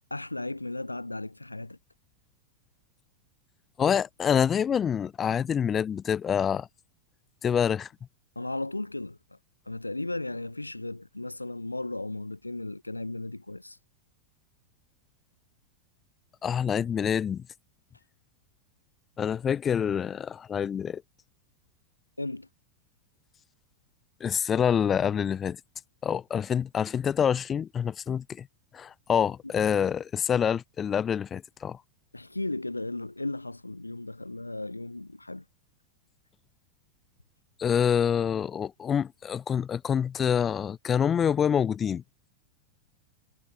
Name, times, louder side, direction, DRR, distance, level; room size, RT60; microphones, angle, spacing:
voice 1, 0.1-1.8 8.4-9.2 9.7-13.8 22.2-22.5 32.1-35.4, left 2 dB, 85° left, 2.7 m, -35 dB
voice 2, 3.8-6.7 7.4-7.9 16.4-17.4 19.2-21.0 24.2-25.6 26.0-28.5 28.7-31.8 37.6-42.0, left 8 dB, 25° left, 1.1 m, -26 dB
figure-of-eight pair, 90°, 0 cm